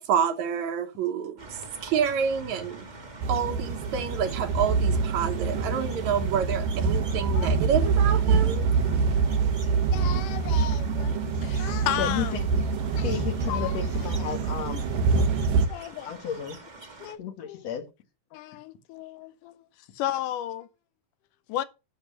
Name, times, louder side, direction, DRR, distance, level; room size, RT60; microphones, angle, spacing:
voice 1, 0.1-2.9 3.3-8.6, right 7 dB, 70° right, 2.2 m, -28 dB
sound 1, 1.4-17.1, right 2 dB, 30° right, 0.7 m, -45 dB
Suburb Train Gödöllő, 3.2-15.7, right 5 dB, 90° right, 2.6 m, -25 dB
voice 2, 9.9-12.4 13.0-13.2 13.5-13.7 15.7-16.1 17.0-17.2 17.4-17.6 18.3-19.5 20.0-20.7 21.5-21.6, left 12 dB, 80° left, 2.3 m, -33 dB
voice 3, 12.0-12.5 13.0-14.8 16.0-16.6 17.2-17.9, left 8 dB, 60° left, 2.4 m, -32 dB
12.0 x 6.3 x 5.6 m
omnidirectional pair, 3.7 m